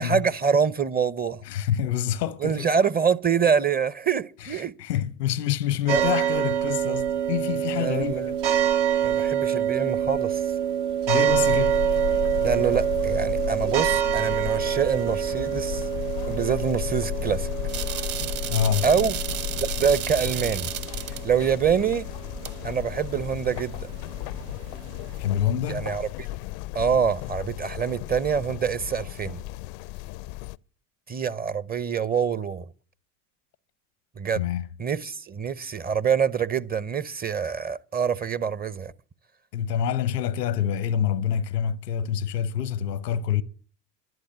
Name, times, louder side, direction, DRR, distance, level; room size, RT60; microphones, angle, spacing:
voice 1, 0.0-1.4 2.4-4.7 5.9-6.0 7.8-8.3 9.0-10.4 12.4-15.8 16.3-17.5 18.8-19.1 19.6-20.7 21.2-22.1 22.6-23.9 25.7-26.3 26.7-29.4 31.1-32.7 34.2-34.4 34.8-38.9, right 7 dB, 20° right, 0.6 m, -25 dB
voice 2, 1.4-2.7 4.4-8.4 8.9-9.3 11.1-11.8 18.5-18.9 25.2-25.9 34.4-34.7 39.5-43.4, left 9 dB, 85° left, 0.9 m, -27 dB
sound 1, 5.9-25.2, right 10 dB, 70° right, 1.1 m, -27 dB
sound 2, 11.3-30.6, left 19 dB, 60° left, 0.5 m, -34 dB
sound 3, 17.7-21.2 22.4-22.5, right 12 dB, 50° right, 1.3 m, -33 dB
11.5 x 10.5 x 7.5 m
hypercardioid pair, 75°, 47 cm